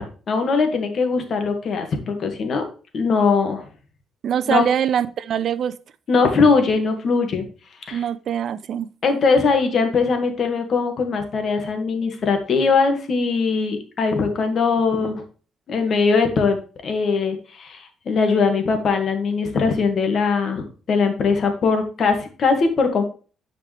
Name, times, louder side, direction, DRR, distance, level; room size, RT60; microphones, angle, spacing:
voice 1, 0.0-2.6 2.9-3.7 4.5-4.6 6.1-7.4 7.9-8.0 9.0-15.2 15.7-23.0, left 4 dB, 55° left, 5 dB, 1.9 m, -21 dB
voice 2, 4.2-5.7 7.9-8.9, right 9 dB, 65° right, 15 dB, 0.6 m, -23 dB
10.5 x 5.2 x 3.4 m, 0.38 s
cardioid pair, 90°, 0 cm